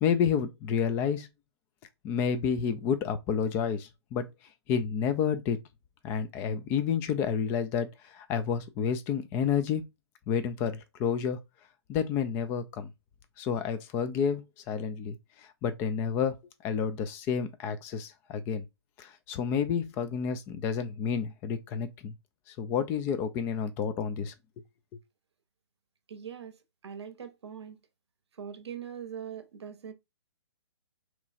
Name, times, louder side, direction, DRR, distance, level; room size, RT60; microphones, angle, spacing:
voice 1, 0.0-1.3 2.0-4.3 4.7-5.6 6.0-9.8 10.3-11.4 11.9-12.9 13.4-15.2 15.6-16.3 16.6-18.6 19.0-22.1 22.6-24.3, left 7 dB, 15° left, 0.3 m, -30 dB
voice 2, 26.1-26.6 26.8-27.8 28.4-29.9, right 8 dB, 70° right, 0.7 m, -41 dB
2.9 x 2.3 x 4.1 m
hypercardioid pair, 145°, 15 cm